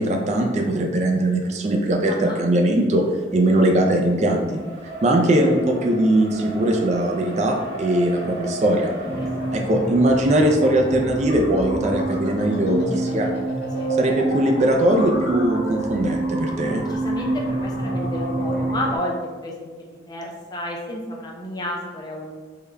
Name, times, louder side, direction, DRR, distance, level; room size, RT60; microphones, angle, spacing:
voice 1, 0.0-3.0 3.3-4.6 5.0-8.9 9.5-13.3 14.0-16.8, right 1 dB, 40° right, 2 dB, 0.3 m, -20 dB
voice 2, 2.1-2.4 9.0-9.6 13.8-13.9 16.8-22.3, left 1 dB, 25° left, -1 dB, 0.4 m, -32 dB
Race car auto racing, 2.8-13.9, right 1 dB, 85° right, 0.8 m, -38 dB
sound 1, 9.0-19.0, right 2 dB, 85° left, 0.7 m, -27 dB
3.6 x 2.2 x 3.2 m, 1.3 s
head